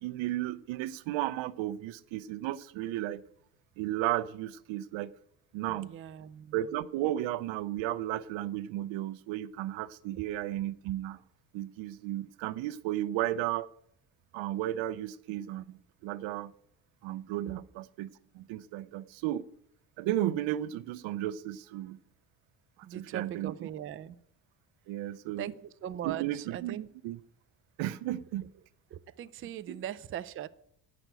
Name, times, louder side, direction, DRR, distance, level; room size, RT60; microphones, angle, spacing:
voice 1, 0.0-3.2 3.8-5.1 5.5-5.9 6.5-11.2 11.5-13.7 14.3-16.5 17.0-19.5 20.0-22.0 22.9-23.7 24.9-25.5 26.0-27.2 27.8-28.5 29.7-29.8, right 13 dB, 80° right, 0.6 m, -34 dB
voice 2, 5.7-6.6 22.8-24.2 25.4-26.9 28.9-30.5, right 11 dB, 30° right, 0.4 m, -40 dB
8.8 x 6.0 x 8.0 m
cardioid pair, 120°, 45 cm